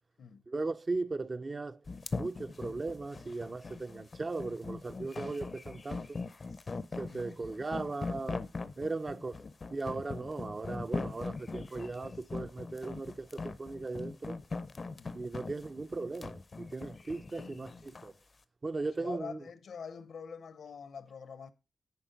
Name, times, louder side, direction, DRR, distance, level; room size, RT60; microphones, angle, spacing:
voice 1, 0.5-1.8 2.1-6.2 6.9-8.5 8.8-9.4 9.7-14.4 15.1-17.7 18.0-18.1 18.6-19.4, right 3 dB, 30° right, 0.5 m, -37 dB
sound 1, 1.9-18.1, left 4 dB, 40° left, 0.5 m, -41 dB
voice 2, 17.3-18.0 19.0-21.5, left 6 dB, 70° left, 0.7 m, -46 dB
10.5 x 4.4 x 3.9 m
wide cardioid pair, 120°, 0 cm